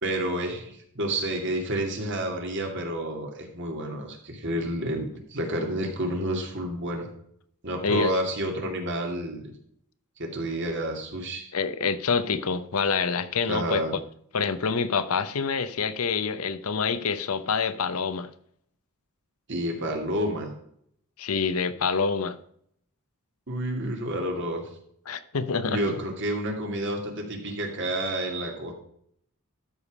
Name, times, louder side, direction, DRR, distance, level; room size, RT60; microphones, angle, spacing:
voice 1, 0.0-7.1 7.6-9.5 10.2-11.5 13.5-13.9 19.5-20.5 23.5-24.6 25.7-28.7, right 1 dB, 55° right, 2.4 m, -30 dB
voice 2, 11.5-13.8 14.3-18.3 21.2-22.4 25.1-26.0, left 5 dB, 80° left, 0.8 m, -26 dB
12.5 x 5.0 x 5.3 m
head